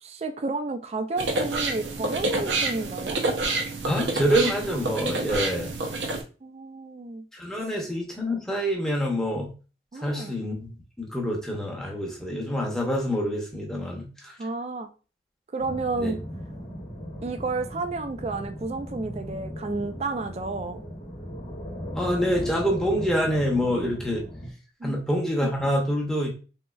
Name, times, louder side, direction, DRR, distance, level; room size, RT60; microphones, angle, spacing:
voice 1, 0.0-3.2 6.4-7.2 9.9-10.4 14.4-14.9 15.5-16.2 17.2-20.8 24.8-25.0, right 3 dB, 35° right, 0.3 m, -31 dB
sound 1, 1.2-6.2, right 3 dB, 80° right, 0.6 m, -28 dB
voice 2, 3.9-5.7 7.3-9.5 10.0-10.7 11.0-14.3 16.0-16.1 22.0-24.2 24.8-26.3, equal, 5° left, 0.7 m, -26 dB
sound 2, 15.6-24.5, equal, 45° left, 0.8 m, -37 dB
3.5 x 3.1 x 2.3 m
head